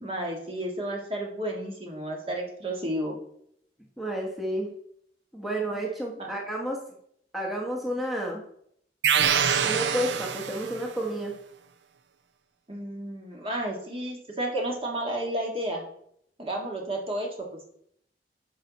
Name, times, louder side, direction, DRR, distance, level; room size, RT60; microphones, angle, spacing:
voice 1, 0.0-3.1 6.2-6.3 12.7-15.8 16.4-17.3, right 1 dB, 35° right, 0 dB, 1.8 m, -32 dB
voice 2, 4.0-4.7 5.3-6.8 7.3-8.4 9.6-11.3, right 1 dB, ahead, -2 dB, 1.2 m, -31 dB
sound 1, 9.0-10.9, right 8 dB, 90° right, 0.5 m, -25 dB
9.7 x 5.7 x 4.0 m, 0.69 s
head